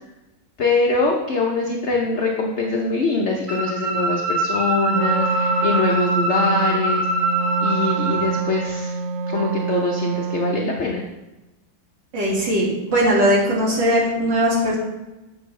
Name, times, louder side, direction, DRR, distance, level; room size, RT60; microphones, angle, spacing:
voice 1, 0.6-7.3 7.6-9.0 9.3-11.0, left 3 dB, 65° left, 0 dB, 0.7 m, -23 dB
sound 1, 3.5-8.3, right 2 dB, 45° right, 1.5 m, -23 dB
Wind instrument woodwind instrument, 4.9-10.9, right 6 dB, 80° right, 1.3 m, -26 dB
voice 2, 12.1-14.8, equal, 65° right, -4 dB, 2.7 m, -19 dB
9.8 x 6.0 x 3.2 m, 1.0 s
omnidirectional pair, 2.1 m